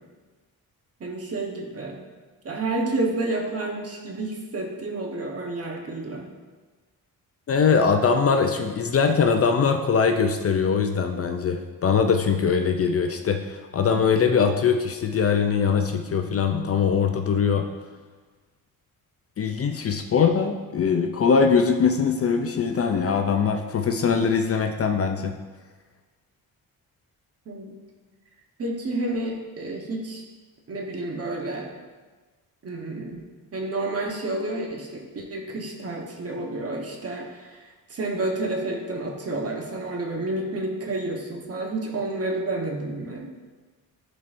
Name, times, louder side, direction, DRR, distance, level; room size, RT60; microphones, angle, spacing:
voice 1, 1.0-2.0 2.4-6.3 27.5-27.8 28.6-30.2 30.7-31.7 32.6-33.2 33.5-43.3, right 2 dB, 40° right, 1 dB, 1.2 m, -30 dB
voice 2, 7.5-17.7 19.4-25.3, left 6 dB, 40° left, 6 dB, 0.5 m, -22 dB
10.5 x 4.3 x 2.6 m, 1.3 s
cardioid pair, 100°, 36 cm